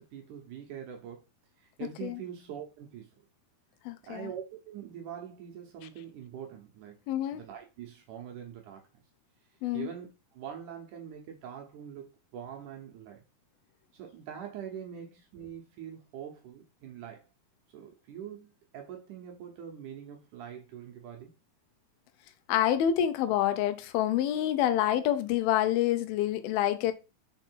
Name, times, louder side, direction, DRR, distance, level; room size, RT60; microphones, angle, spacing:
voice 1, 0.1-1.2 1.6-3.1 4.0-7.0 7.3-8.8 9.7-12.1 12.3-13.2 13.9-17.2 17.7-21.3, right 9 dB, 70° right, 2.1 m, -43 dB
voice 2, 3.9-4.3 7.1-7.4 9.6-9.9 22.5-26.9, left 11 dB, 80° left, 2.4 m, -27 dB
5.8 x 4.4 x 4.5 m
omnidirectional pair, 4.5 m